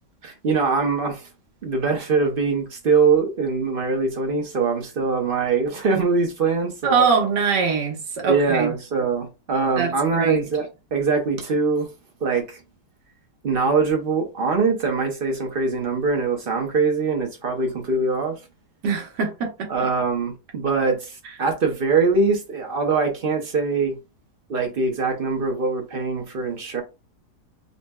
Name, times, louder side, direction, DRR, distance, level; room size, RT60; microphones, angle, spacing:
voice 1, 0.2-1.3 1.6-7.0 8.2-11.9 12.2-12.6 13.4-18.4 19.7-24.0 24.5-26.8, right 4 dB, 45° right, 0.7 m, -23 dB
voice 2, 6.8-8.7 9.8-10.5 18.8-19.7, right 5 dB, 85° right, 1.7 m, -22 dB
5.2 x 2.1 x 2.3 m
omnidirectional pair, 1.8 m